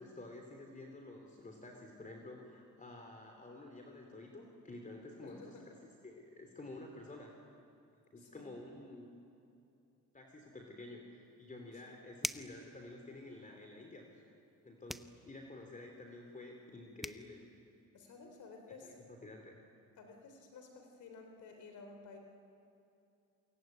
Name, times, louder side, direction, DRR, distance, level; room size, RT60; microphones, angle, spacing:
voice 1, 0.0-7.4 8.1-9.1 10.1-14.2 14.6-17.5 18.8-19.6, left 2 dB, 25° left, 2 dB, 3.5 m, -51 dB
voice 2, 5.2-5.7 8.2-8.5 11.7-12.0 17.9-19.0 20.0-22.2, left 4 dB, 75° left, 4 dB, 3.8 m, -54 dB
sound 1, 12.2-12.6 14.9-15.2 16.7-16.8 17.0-17.2, equal, ahead, 0.9 m, -40 dB
27.0 x 23.0 x 9.4 m, 2.7 s
cardioid pair, 90°, 30 cm